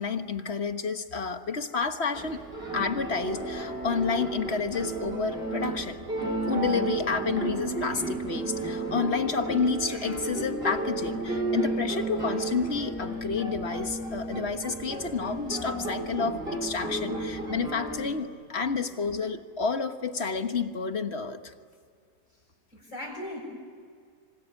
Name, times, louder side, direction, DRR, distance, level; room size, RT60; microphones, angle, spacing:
voice 1, 0.0-2.4 2.7-6.0 6.5-21.5, left 5 dB, 45° left, 8 dB, 1.5 m, -30 dB
sound 1, 2.1-18.0, right 2 dB, 40° right, 5.5 m, -33 dB
voice 2, 22.7-23.4, left 1 dB, 65° left, -6 dB, 6.5 m, -38 dB
26.5 x 25.5 x 8.5 m, 2.1 s
omnidirectional pair, 1.6 m